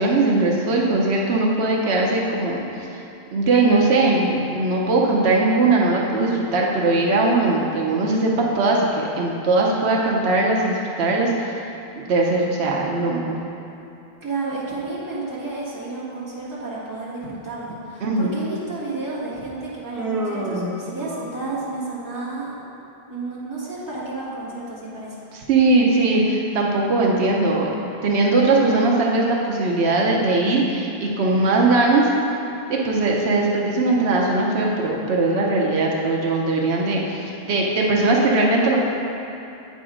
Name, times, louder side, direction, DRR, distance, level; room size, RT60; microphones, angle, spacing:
voice 1, 0.0-2.6 3.3-11.5 12.0-13.4 18.0-18.4 25.3-27.7 28.0-32.1 32.7-38.8, right 2 dB, 85° right, -2 dB, 1.0 m, -20 dB
voice 2, 14.2-22.6 23.1-25.2, right 3 dB, 20° right, -10 dB, 1.8 m, -31 dB
Human voice, 20.0-21.7, right 1 dB, ahead, 1.0 m, -28 dB
8.5 x 4.0 x 4.9 m, 2.9 s
omnidirectional pair, 1.1 m